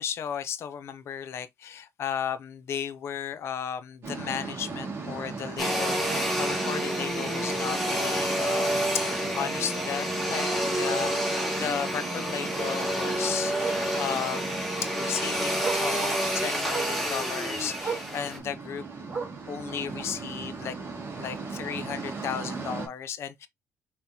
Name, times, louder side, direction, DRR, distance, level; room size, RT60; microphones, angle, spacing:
voice 1, 0.0-18.8 19.5-20.8 21.2-23.5, left 8 dB, 55° left, 0.7 m, -35 dB
sound 1, 4.0-22.9, right 4 dB, 50° right, 2.0 m, -39 dB
Domestic sounds home sounds, 5.6-18.4, equal, ahead, 1.7 m, -29 dB
Bark, 12.5-12.8 13.6-13.9 15.1-15.2 15.6-15.9 16.7-17.0 17.8-18.1 19.1-19.5 20.5-20.6, right 5 dB, 30° right, 3.4 m, -35 dB
5.7 x 3.2 x 2.8 m
cardioid pair, 135°, 5 cm